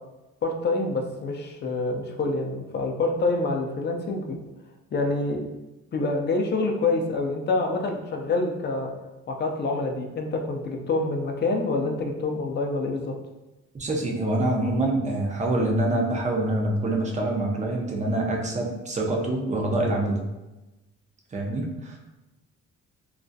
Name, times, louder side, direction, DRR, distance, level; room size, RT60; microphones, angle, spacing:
voice 1, 0.4-4.4 4.9-5.4 5.9-8.9 9.3-13.1, left 3 dB, 35° left, 2 dB, 0.4 m, -26 dB
voice 2, 13.7-20.2 21.3-22.0, right 1 dB, 25° right, 0 dB, 0.5 m, -25 dB
2.3 x 2.0 x 2.6 m, 1.0 s
cardioid pair, 90°, 30 cm